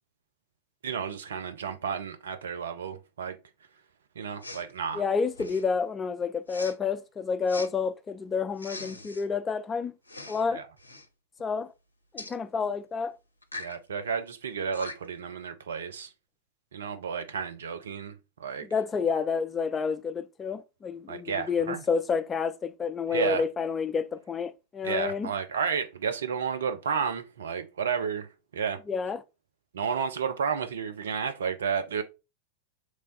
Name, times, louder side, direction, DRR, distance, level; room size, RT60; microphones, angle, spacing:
voice 1, 0.8-3.4 4.2-5.0 10.5-10.7 13.6-16.1 16.7-18.7 21.1-21.8 23.1-23.4 24.8-28.3 28.5-28.8 29.7-32.0, right 6 dB, 65° right, 0.5 m, -32 dB
Respiratory sounds, 4.4-4.7 5.3-5.7 6.5-6.7 7.5-7.7 8.6-9.2 10.0-10.4 10.8-11.1 12.2-12.4 13.4-13.8 14.4-14.5 14.7-15.2, left 2 dB, 80° left, 0.5 m, -41 dB
voice 2, 4.9-9.9 10.3-10.6 11.4-11.7 12.1-13.2 18.7-25.3 28.9-29.2, left 5 dB, 20° left, 0.3 m, -29 dB
3.1 x 2.2 x 3.9 m
figure-of-eight pair, 90°, 0 cm